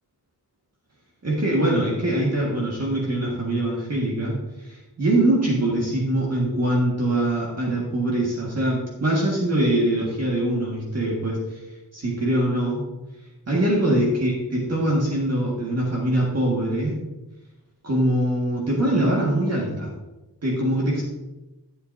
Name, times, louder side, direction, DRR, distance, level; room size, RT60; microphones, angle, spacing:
voice 1, 1.2-4.3 4.6-11.6 11.9-12.8 13.5-17.0 17.8-19.9 20.4-21.0, right 1 dB, 35° right, -4 dB, 1.8 m, -23 dB
13.0 x 7.8 x 2.7 m, 1.0 s
wide cardioid pair, 155°, 42 cm